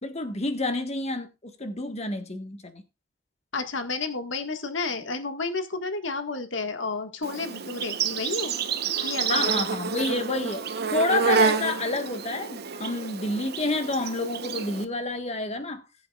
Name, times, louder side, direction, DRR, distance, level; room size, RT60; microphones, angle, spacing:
voice 1, 0.0-2.8 8.9-10.6 10.9-15.8, left 2 dB, 35° left, 1.5 m, -29 dB
voice 2, 3.5-8.6 9.0-9.6, left 3 dB, 70° left, 1.7 m, -31 dB
Insect, 7.2-14.8, right 6 dB, 55° right, 0.9 m, -28 dB
19.0 x 7.8 x 2.4 m
head